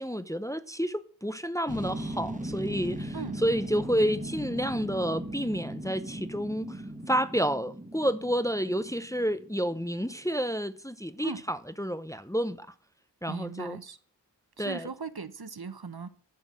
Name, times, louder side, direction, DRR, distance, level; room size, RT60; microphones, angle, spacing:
voice 1, 0.0-12.7 13.2-13.8 14.6-14.9, equal, 10° left, 0.7 m, -30 dB
sound 1, 1.7-10.2 10.5-10.6, right 1 dB, 20° right, 1.1 m, -38 dB
voice 2, 13.3-14.0 14.6-16.1, right 5 dB, 60° right, 0.9 m, -38 dB
11.5 x 6.3 x 7.6 m
wide cardioid pair, 45°, 43 cm